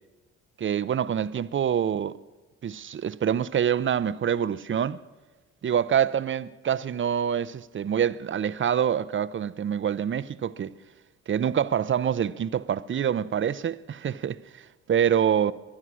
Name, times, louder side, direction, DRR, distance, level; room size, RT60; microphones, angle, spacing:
voice 1, 0.6-2.2 2.6-5.0 5.6-10.7 11.3-14.6 14.9-15.5, right 8 dB, 35° right, 0.6 m, -26 dB
23.0 x 9.8 x 6.2 m
supercardioid pair, 65°, 33 cm